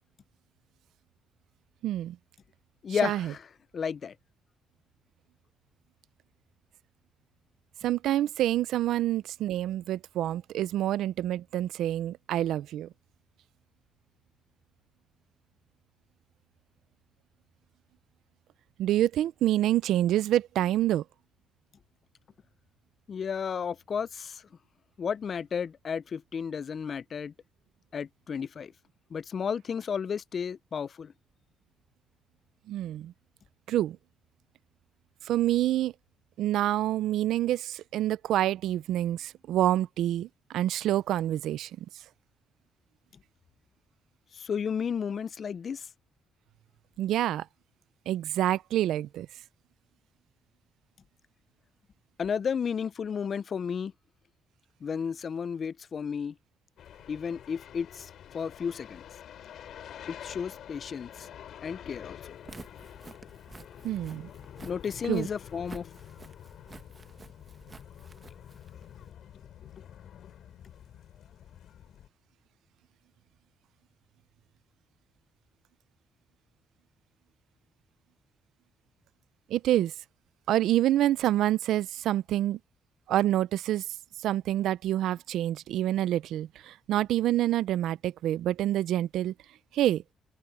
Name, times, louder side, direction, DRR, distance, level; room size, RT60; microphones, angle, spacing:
voice 1, 1.8-2.2 3.0-3.3 7.8-12.9 18.8-21.0 32.7-33.1 33.7-34.0 35.3-35.9 36.4-41.7 47.0-47.5 48.1-49.3 63.8-64.3 65.1-65.3 79.5-79.9 80.5-82.6 83.1-83.8 84.2-89.3 89.7-90.0, right 13 dB, 80° right, 0.5 m, -27 dB
voice 2, 2.8-3.5 3.7-4.1 23.1-24.4 25.0-27.3 27.9-28.7 29.1-31.1 44.3-45.9 52.2-53.9 54.8-56.3 57.1-59.0 60.1-61.3 61.6-62.2 64.6-65.9, left 6 dB, 50° left, 0.4 m, -33 dB
sound 1, 56.8-72.1, left 10 dB, 70° left, 7.1 m, -48 dB
Walk footsteps, 62.3-69.1, right 4 dB, 30° right, 1.3 m, -51 dB
cardioid pair, 90°, 0 cm